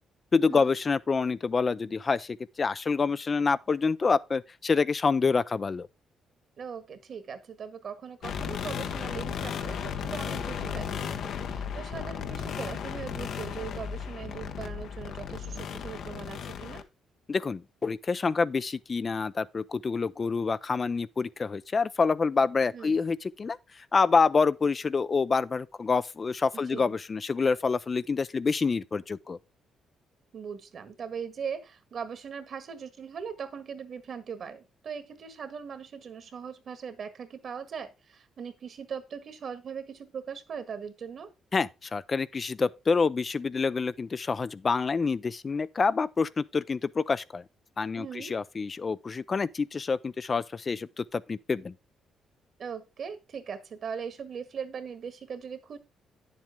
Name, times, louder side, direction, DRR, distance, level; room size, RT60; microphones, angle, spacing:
voice 1, 0.3-5.9 17.3-29.4 41.5-47.4 47.8-51.7, left 4 dB, 35° left, 0.5 m, -27 dB
voice 2, 6.6-16.8 22.7-23.0 26.7-26.9 30.3-41.3 48.0-48.3 52.6-55.8, right 6 dB, 55° right, 1.6 m, -40 dB
sound 1, 8.2-16.8, left 7 dB, 70° left, 1.0 m, -35 dB
9.5 x 7.5 x 3.6 m
cardioid pair, 90°, 0 cm